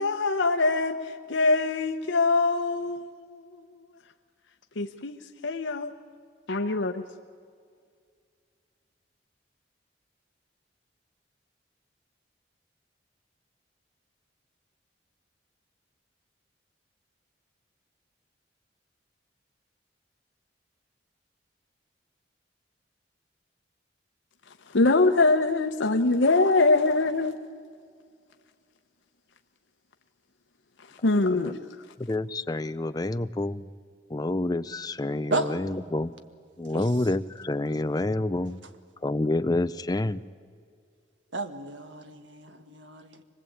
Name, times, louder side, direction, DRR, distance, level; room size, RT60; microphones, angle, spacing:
voice 1, 0.0-3.7 4.8-5.9 6.5-7.0 24.7-27.3 31.0-31.6, left 3 dB, 85° left, 0.9 m, -23 dB
voice 2, 32.0-33.7 34.1-36.2 36.6-38.6 39.0-40.2, left 2 dB, 20° left, 0.5 m, -28 dB
voice 3, 41.3-43.2, right 2 dB, 80° right, 1.7 m, -32 dB
25.0 x 20.5 x 8.7 m
head